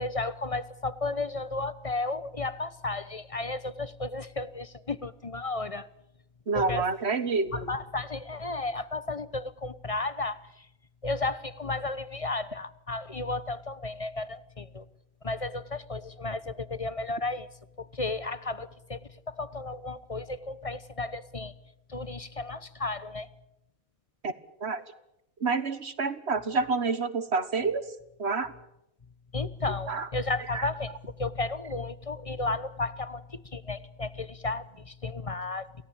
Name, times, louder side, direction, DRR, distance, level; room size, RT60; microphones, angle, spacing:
voice 1, 0.0-5.9 6.5-6.8 7.5-10.7 11.0-14.9 15.2-17.5 17.8-19.0 19.3-21.5 21.9-23.3 29.3-35.7, left 2 dB, 25° left, 15 dB, 0.9 m, -33 dB
voice 2, 6.5-7.7 24.2-24.3 24.6-24.8 25.4-27.8 28.2-28.5 29.9-30.1 30.5-30.7, right 4 dB, 50° right, 13 dB, 1.8 m, -28 dB
28.5 x 17.5 x 8.7 m, 0.82 s
omnidirectional pair, 1.5 m